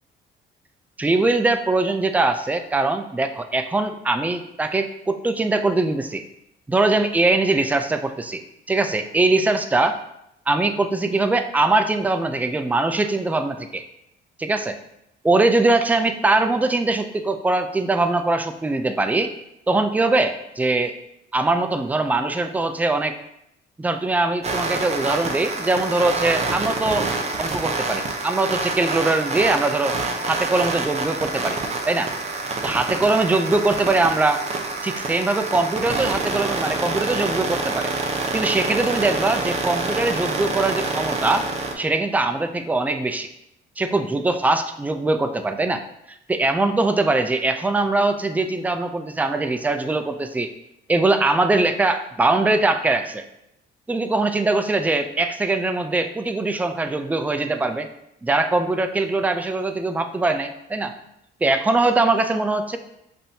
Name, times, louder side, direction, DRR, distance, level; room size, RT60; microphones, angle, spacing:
voice 1, 1.0-6.2 6.7-8.4 8.7-10.0 10.5-13.8 14.4-14.8 15.2-19.3 19.7-20.9 21.3-23.2 23.8-27.1 27.4-30.0 30.3-31.6 31.9-32.1 32.6-34.4 34.8-37.9 38.3-41.5 41.8-43.3 43.8-45.8 46.3-50.5 50.9-53.2 53.9-57.9 58.2-60.9 61.4-62.8, right 2 dB, 10° right, 8 dB, 0.3 m, -22 dB
sound 1, 24.4-41.7, right 3 dB, 35° right, 0.7 m, -27 dB
7.4 x 2.6 x 2.7 m, 0.81 s
cardioid pair, 90°, 20 cm